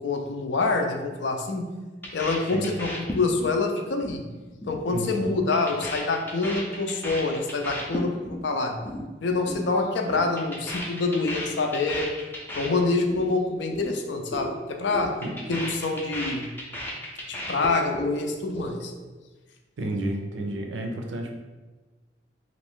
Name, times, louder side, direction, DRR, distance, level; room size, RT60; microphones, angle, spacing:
voice 1, 0.0-1.7 2.1-4.2 4.7-8.8 9.2-12.1 12.6-15.1 15.5-16.5 17.3-18.9, left 3 dB, 70° left, 4 dB, 0.4 m, -26 dB
sound 1, 2.0-3.6 3.9-4.2 4.5-4.8 5.1-8.4 8.7-9.0 9.3-9.6 9.9-13.3 13.6-13.9 14.2-14.5 14.8-18.1 18.4-19.0, equal, 10° left, 0.4 m, -35 dB
voice 2, 19.8-21.4, right 1 dB, 75° right, 3 dB, 0.5 m, -31 dB
3.0 x 2.5 x 3.6 m, 1.2 s
head